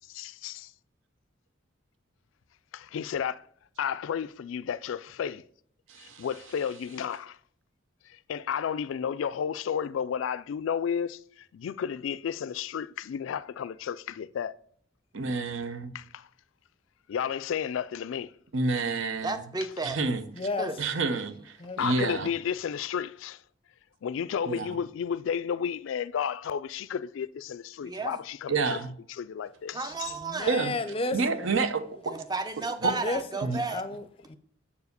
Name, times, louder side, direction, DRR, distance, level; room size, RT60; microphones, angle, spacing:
voice 1, 0.1-0.7 2.7-3.3 3.8-5.4 6.0-7.4 8.1-14.6 15.9-16.3 17.1-18.3 21.8-23.4 24.0-28.8 29.2-30.1, left 8 dB, 70° left, 0.3 m, -32 dB
voice 2, 5.9-6.3 15.1-15.9 18.5-19.4 19.8-20.2 20.8-22.3 24.4-24.8 28.5-28.9 30.5-30.7 31.1-32.1 32.8-32.9 33.4-33.6, right 4 dB, 70° right, 0.8 m, -29 dB
voice 3, 19.2-20.0 20.6-20.8 27.8-28.2 29.7-30.6 32.0-33.8, right 3 dB, 20° right, 0.7 m, -33 dB
voice 4, 20.3-20.7 21.6-21.8 22.1-22.3 30.1-31.5 32.9-34.4, left 2 dB, 30° left, 0.6 m, -33 dB
6.9 x 4.8 x 6.7 m
head